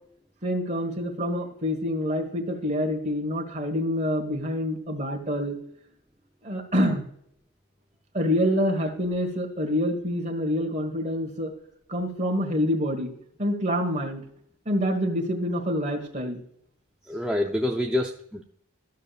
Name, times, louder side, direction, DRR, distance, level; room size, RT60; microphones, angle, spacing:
voice 1, 0.4-5.6 6.4-7.1 8.1-11.5 11.9-13.1 13.4-14.2 14.6-16.4, equal, 30° right, 2 dB, 1.4 m, -26 dB
voice 2, 17.1-18.4, left 1 dB, 5° right, 0 dB, 0.4 m, -27 dB
13.0 x 6.6 x 2.4 m, 0.67 s
head